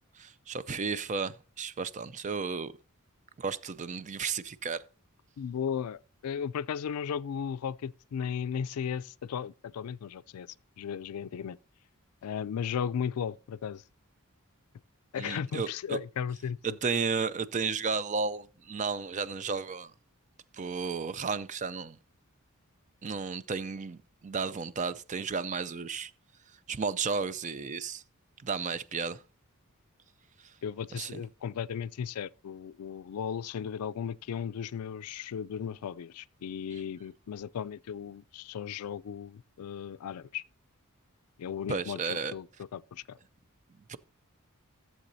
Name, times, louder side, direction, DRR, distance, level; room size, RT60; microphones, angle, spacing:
voice 1, 0.1-2.7 3.4-4.8 15.2-16.0 16.6-19.9 20.5-22.0 23.0-26.1 26.7-28.0 28.4-29.2 30.4-30.5 30.9-31.2 41.7-42.3 43.9-44.0, right 5 dB, 35° right, 0.4 m, -33 dB
voice 2, 5.4-10.5 10.8-11.6 12.2-13.8 15.1-16.8 30.6-40.4 41.4-42.5 42.7-43.2, left 7 dB, 80° left, 0.4 m, -36 dB
14.5 x 7.5 x 2.7 m
head